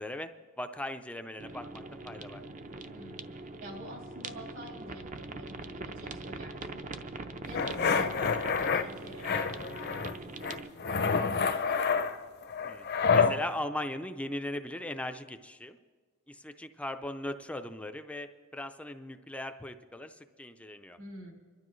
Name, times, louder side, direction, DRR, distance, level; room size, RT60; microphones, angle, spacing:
voice 1, 0.0-2.4 12.6-15.8 16.3-21.0, left 1 dB, 5° left, 8 dB, 0.4 m, -39 dB
sound 1, 1.4-10.7, right 3 dB, 35° right, 0.6 m, -42 dB
voice 2, 2.9-11.8 21.0-21.3, right 1 dB, 65° right, -1 dB, 3.5 m, -48 dB
sound 2, 7.5-8.8 9.2-10.1 10.4-13.4, left 5 dB, 50° left, 0.6 m, -28 dB
26.0 x 12.0 x 3.1 m, 1.5 s
head